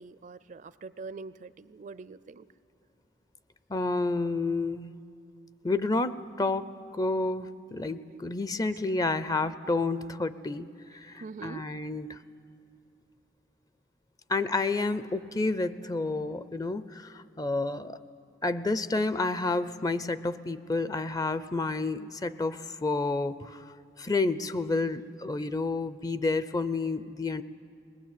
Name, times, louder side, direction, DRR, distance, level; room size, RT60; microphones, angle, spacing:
voice 1, 0.0-2.5 8.1-8.2 8.6-10.2 11.2-11.7, right 4 dB, 45° right, 16 dB, 0.4 m, -45 dB
voice 2, 3.7-4.9 5.6-12.2 14.3-18.0 18.4-23.7 24.0-27.4, left 3 dB, 20° left, 14 dB, 0.5 m, -30 dB
20.5 x 20.0 x 8.4 m, 2.5 s
head